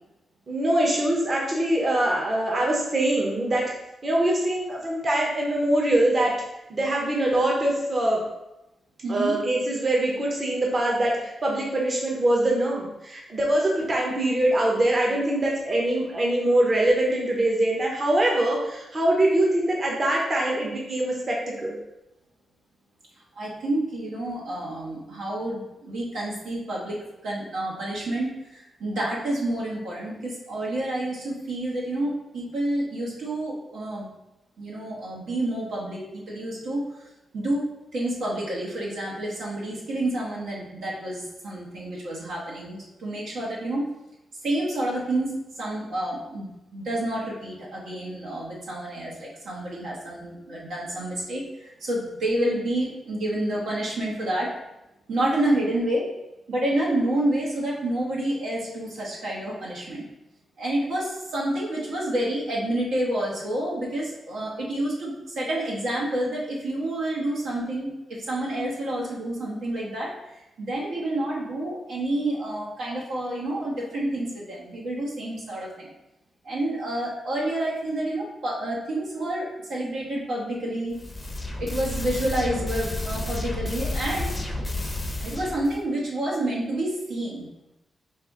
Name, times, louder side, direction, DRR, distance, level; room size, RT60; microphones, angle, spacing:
voice 1, 0.5-3.7 4.0-6.3 6.7-8.2 9.1-21.7, right 1 dB, 35° right, -1 dB, 0.8 m, -23 dB
voice 2, 9.0-9.3 23.4-34.1 34.6-36.8 37.3-43.9 44.4-54.5 55.1-56.1 56.5-60.0 60.6-75.9 76.4-81.0 81.6-84.3 85.2-87.5, right 1 dB, 85° right, -5 dB, 1.3 m, -29 dB
sound 1, 80.9-85.8, left 1 dB, 20° left, 0.6 m, -31 dB
4.8 x 2.5 x 3.6 m, 0.94 s
cardioid pair, 95°, 0 cm